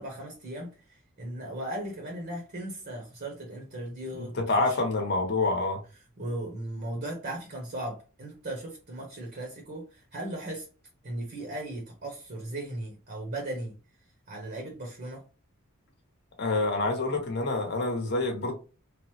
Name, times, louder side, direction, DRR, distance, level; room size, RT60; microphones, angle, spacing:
voice 1, 0.0-4.8 6.2-10.7 11.0-13.8 14.3-15.2, right 1 dB, 45° right, 0.8 m, -37 dB
voice 2, 4.2-5.8 16.4-18.5, left 2 dB, 50° left, 0.8 m, -27 dB
3.2 x 2.0 x 3.0 m
head